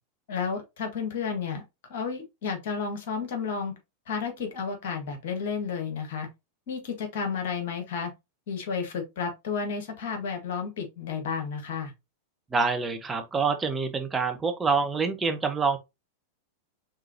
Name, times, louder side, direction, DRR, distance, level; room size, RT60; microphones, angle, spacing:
voice 1, 0.3-1.6 1.9-3.7 4.1-6.3 6.7-8.1 8.5-11.9, left 5 dB, 50° left, 1.7 m, -32 dB
voice 2, 12.5-15.8, right 4 dB, 15° right, 0.7 m, -26 dB
4.7 x 3.7 x 2.7 m
figure-of-eight pair, 90°, 0 cm